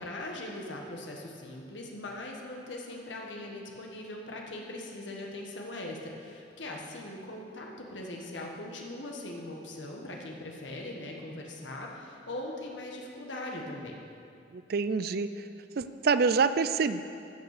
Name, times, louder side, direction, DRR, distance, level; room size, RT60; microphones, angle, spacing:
voice 1, 0.0-14.0, left 1 dB, 80° left, 0 dB, 1.5 m, -40 dB
voice 2, 14.5-15.3 15.8-17.0, right 5 dB, 55° right, 12 dB, 0.4 m, -26 dB
14.5 x 6.8 x 6.7 m, 2.5 s
head